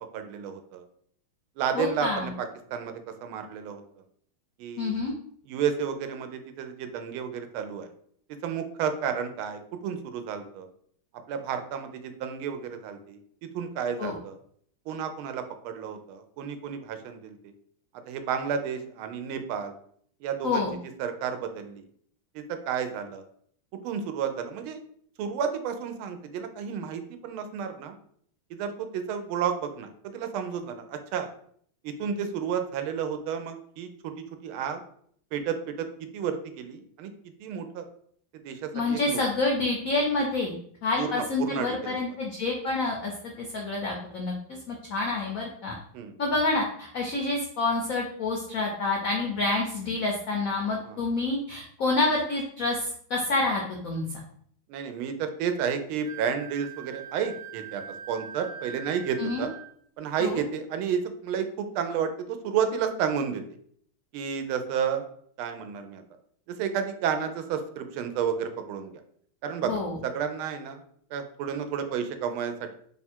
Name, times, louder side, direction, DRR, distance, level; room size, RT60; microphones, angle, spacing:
voice 1, 0.1-0.8 1.6-2.9 3.2-3.8 4.6-5.0 5.5-7.9 8.4-10.7 11.3-13.2 13.5-14.4 14.9-17.5 18.1-19.7 20.2-20.7 21.0-21.8 22.3-23.2 23.8-24.8 25.2-27.9 28.5-31.3 31.8-34.1 34.4-34.8 35.3-37.1 37.4-37.9 38.4-39.2 41.0-42.0 45.9-46.1 50.9-51.0 54.7-59.5 60.0-63.4 64.1-65.1 65.4-66.0 66.5-68.9 69.4-70.8 71.1-72.7, right 7 dB, 90° right, 7 dB, 1.4 m, -31 dB
voice 2, 1.7-2.3 4.8-5.1 14.0-14.1 20.4-20.7 38.7-40.5 40.8-43.1 43.4-44.3 44.7-45.8 46.2-54.2 59.2-59.5 60.2-60.4 69.6-70.0, left 3 dB, 80° left, 0 dB, 0.7 m, -28 dB
Wind instrument woodwind instrument, 56.0-59.8, right 8 dB, 65° right, 1.4 m, -43 dB
3.6 x 2.4 x 4.3 m, 0.62 s
omnidirectional pair, 2.3 m